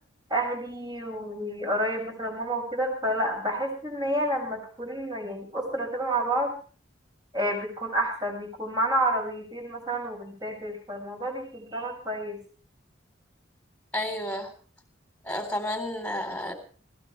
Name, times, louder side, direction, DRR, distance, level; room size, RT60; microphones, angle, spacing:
voice 1, 0.3-6.5 7.3-12.4, right 1 dB, 20° right, 1 dB, 6.8 m, -29 dB
voice 2, 13.9-14.5 15.2-16.5, left 1 dB, 5° left, 4 dB, 3.8 m, -31 dB
21.5 x 17.5 x 3.3 m, 0.41 s
head